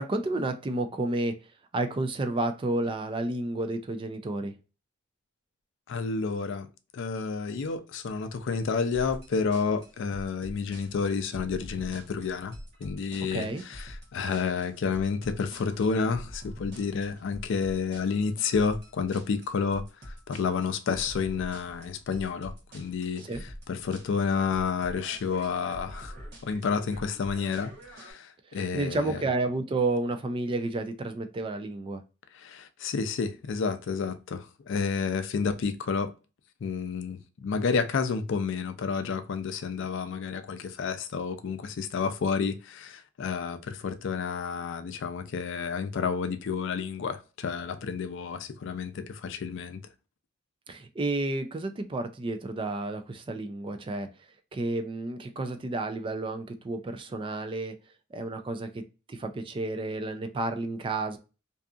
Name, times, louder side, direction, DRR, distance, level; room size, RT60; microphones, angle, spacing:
voice 1, 0.0-1.4 1.7-4.5 13.3-13.6 23.3-23.4 28.5-32.0 50.7-54.1 54.5-57.8 58.1-58.8 59.1-61.2, right 2 dB, 25° right, 0.3 m, -31 dB
voice 2, 5.9-6.7 6.9-12.6 12.8-26.1 26.4-29.3 32.3-36.1 36.6-49.8, left 5 dB, 65° left, 0.4 m, -30 dB
sound 1, 8.9-28.1, equal, 55° right, 0.9 m, -45 dB
2.6 x 2.4 x 2.3 m
head